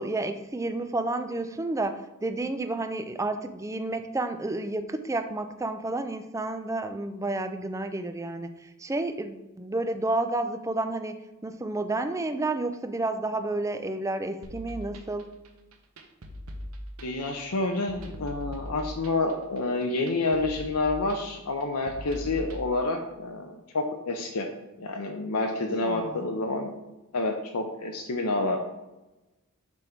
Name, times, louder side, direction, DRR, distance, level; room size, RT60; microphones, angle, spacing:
voice 1, 0.0-11.2 11.4-15.3 25.8-26.2, right 2 dB, 15° right, 8 dB, 0.4 m, -31 dB
sound 1, 14.4-22.6, equal, 75° right, 0.9 m, -41 dB
voice 2, 17.0-24.5 24.8-26.7 27.1-28.6, left 2 dB, 90° left, 3 dB, 0.8 m, -28 dB
6.1 x 5.2 x 4.5 m, 1.0 s
head